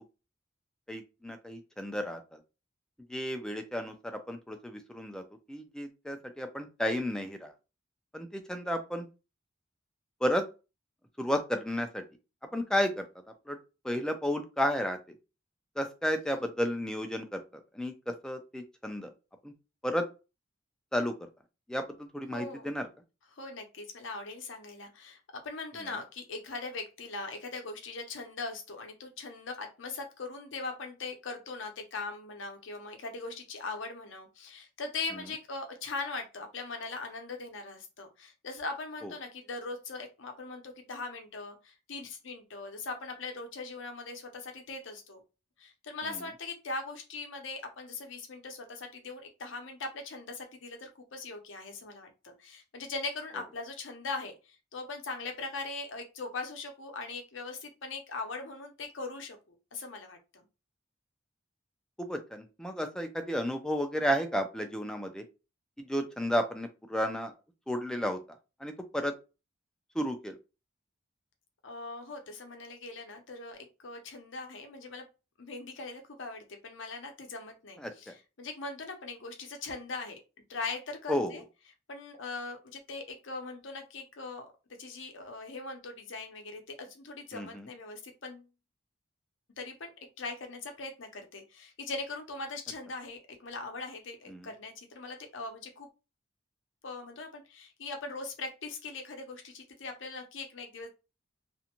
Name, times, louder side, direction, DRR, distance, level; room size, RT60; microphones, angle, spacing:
voice 1, 0.9-2.4 3.1-7.5 8.1-9.1 10.2-10.4 11.2-12.0 12.5-13.1 13.5-13.6 13.8-15.0 15.8-17.4 17.7-19.1 19.4-19.5 19.8-20.1 20.9-21.3 21.7-22.9 25.8-25.9 39.0-39.1 46.0-46.2 62.0-65.2 65.8-67.3 67.7-69.1 69.9-70.4 77.8-78.1 81.1-81.3 87.3-87.7 94.3-94.5, equal, 5° left, 5 dB, 0.4 m, -32 dB
voice 2, 22.3-22.7 23.3-45.2 45.6-60.4 71.6-75.1 75.4-80.2 80.5-81.4 81.9-84.5 84.8-88.5 89.6-89.9 90.2-95.9 96.8-100.9, left 3 dB, 70° left, 4 dB, 0.7 m, -40 dB
2.5 x 2.1 x 2.9 m, 0.30 s
head